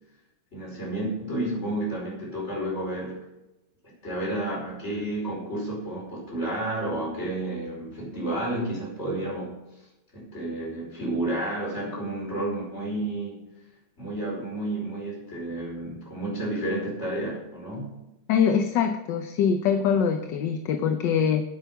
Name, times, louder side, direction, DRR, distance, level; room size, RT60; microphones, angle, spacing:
voice 1, 0.5-3.2 4.0-9.6 10.1-13.4 14.0-17.9, right 1 dB, 30° left, -4 dB, 5.3 m, -31 dB
voice 2, 18.3-21.4, left 7 dB, 65° left, 6 dB, 1.3 m, -23 dB
9.2 x 8.9 x 6.0 m, 0.94 s
omnidirectional pair, 2.3 m